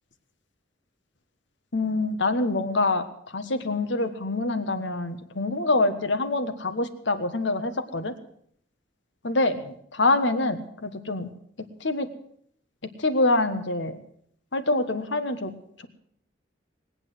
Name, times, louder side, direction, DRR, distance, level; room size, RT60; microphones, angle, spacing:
voice 1, 1.7-3.0 3.3-8.1 9.2-11.3 11.8-12.1 12.8-14.0 14.5-15.5, left 2 dB, 85° left, 9 dB, 1.4 m, -25 dB
20.0 x 8.9 x 7.7 m, 0.65 s
head